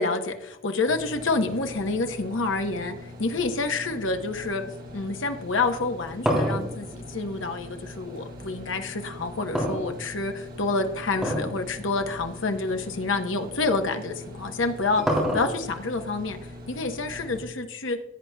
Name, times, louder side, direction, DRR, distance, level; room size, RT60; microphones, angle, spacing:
voice 1, 0.0-2.9 3.2-4.6 4.9-15.0 15.3-16.4 16.7-18.0, left 3 dB, 75° left, 5 dB, 1.0 m, -28 dB
sound 1, 0.9-17.4, left 1 dB, 45° right, 1.5 m, -42 dB
sound 2, 5.8-8.2 9.5-10.4 11.1-11.6 11.9-12.0 12.8-12.9 14.3-15.8, equal, ahead, 3.2 m, -27 dB
16.5 x 8.7 x 2.3 m, 0.87 s
head